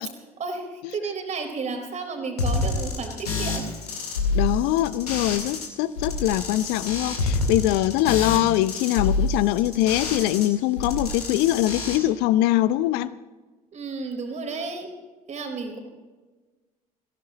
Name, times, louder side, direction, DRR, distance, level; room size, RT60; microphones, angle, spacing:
voice 1, 0.9-3.7 13.7-14.9 15.3-15.8, right 4 dB, 40° right, 3 dB, 4.1 m, -32 dB
sound 1, 2.4-5.7 6.0-10.5 10.8-12.0, left 3 dB, 80° left, 2.4 m, -27 dB
voice 2, 4.3-13.1, left 15 dB, 55° left, 17 dB, 0.7 m, -23 dB
21.5 x 16.0 x 3.0 m, 1.3 s
figure-of-eight pair, 60°, 19 cm